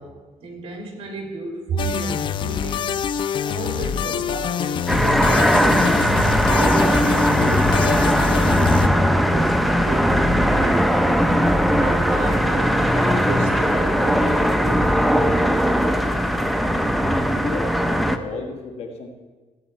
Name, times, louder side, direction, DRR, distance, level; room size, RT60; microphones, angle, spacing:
voice 1, 0.0-2.9 3.4-10.9 11.8-14.9, right 3 dB, 55° right, 1 dB, 3.0 m, -33 dB
sound 1, 1.8-8.9, left 8 dB, 45° left, 0.4 m, -25 dB
sound 2, 4.9-18.2, equal, ahead, 0.7 m, -19 dB
voice 2, 17.4-19.1, left 3 dB, 65° left, 3 dB, 1.9 m, -33 dB
16.5 x 8.2 x 4.3 m, 1.3 s
cardioid pair, 135°, 11 cm